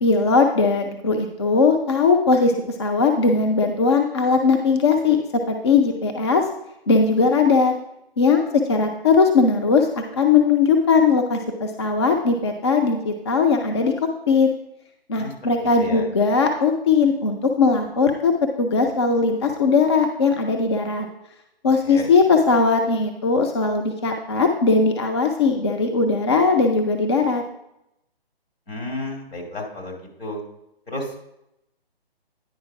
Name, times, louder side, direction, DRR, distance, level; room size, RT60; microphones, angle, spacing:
voice 1, 0.0-2.5 2.8-5.2 5.5-6.4 6.9-7.8 8.2-13.9 14.3-14.5 15.1-18.3 18.6-21.1 21.6-27.4, left 4 dB, 30° left, 3 dB, 0.5 m, -19 dB
voice 2, 15.1-16.1 21.9-22.1 28.7-30.4 30.9-31.1, left 1 dB, 75° left, 0 dB, 2.6 m, -32 dB
9.7 x 4.3 x 4.7 m, 0.83 s
figure-of-eight pair, 145°, 30 cm